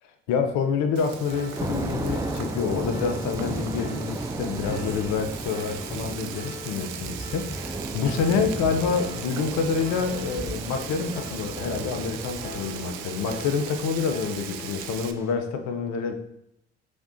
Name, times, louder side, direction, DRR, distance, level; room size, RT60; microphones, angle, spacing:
voice 1, 0.3-16.1, left 5 dB, 65° left, 6 dB, 0.7 m, -27 dB
Frying (food), 1.0-15.1, right 10 dB, 65° right, 0.4 m, -40 dB
Piano, 1.3-15.0, left 3 dB, 25° left, 0.9 m, -43 dB
Thunder / Rain, 1.6-15.3, right 2 dB, 10° right, 0.5 m, -35 dB
5.1 x 3.5 x 2.7 m, 0.78 s
hypercardioid pair, 50°, 30 cm